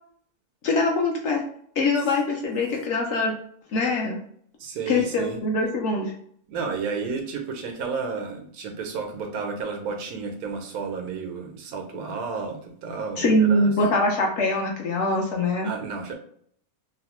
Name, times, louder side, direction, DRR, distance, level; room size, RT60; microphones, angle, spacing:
voice 1, 0.6-1.4 1.8-3.3 3.7-4.2 4.9-6.1 13.2-15.7, left 2 dB, 65° left, 0 dB, 0.8 m, -23 dB
voice 2, 4.6-5.4 6.5-13.7 15.6-16.2, right 5 dB, 90° right, 4 dB, 1.1 m, -32 dB
3.0 x 2.1 x 2.9 m, 0.62 s
omnidirectional pair, 1.5 m